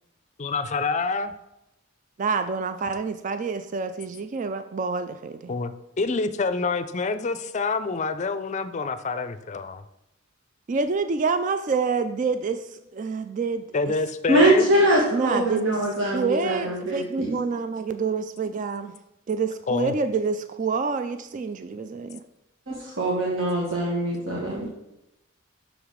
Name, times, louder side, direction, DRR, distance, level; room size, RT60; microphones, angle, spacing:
voice 1, 0.4-1.3 5.5-5.7 6.0-9.8 13.7-14.7 19.7-19.9 21.8-21.9, left 4 dB, 35° left, 11 dB, 0.5 m, -27 dB
voice 2, 2.2-5.5 10.7-13.9 15.1-15.8 16.1-18.9 19.3-22.2, right 4 dB, 40° right, 9 dB, 0.3 m, -27 dB
voice 3, 14.3-17.3 22.7-24.7, right 1 dB, 70° right, -3 dB, 1.4 m, -23 dB
6.2 x 4.9 x 5.1 m, 0.87 s
head